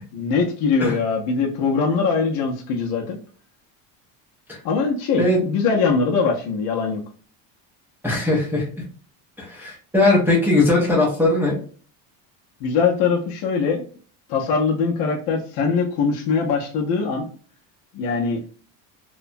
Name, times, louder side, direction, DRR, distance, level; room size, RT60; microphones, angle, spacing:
voice 1, 0.1-3.2 4.6-7.0 12.6-13.8 14.3-17.3 17.9-18.4, left 5 dB, 55° left, -1 dB, 0.6 m, -22 dB
voice 2, 8.0-8.7 9.4-11.6, left 2 dB, 5° right, -6 dB, 0.5 m, -19 dB
2.8 x 2.2 x 2.5 m, 0.42 s
cardioid pair, 165°, 43 cm